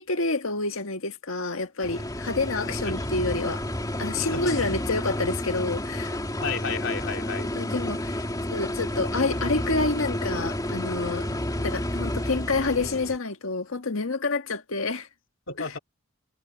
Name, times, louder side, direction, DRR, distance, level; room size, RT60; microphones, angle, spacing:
voice 1, 0.0-3.6 4.0-6.2 7.5-15.1 15.6-15.7, left 3 dB, 85° left, 1.7 m, -28 dB
sound 1, 1.8-13.2, left 1 dB, 20° left, 2.7 m, -30 dB
voice 2, 2.7-3.1 4.3-4.5 6.4-7.5 15.5-15.8, left 5 dB, 65° left, 3.4 m, -32 dB
head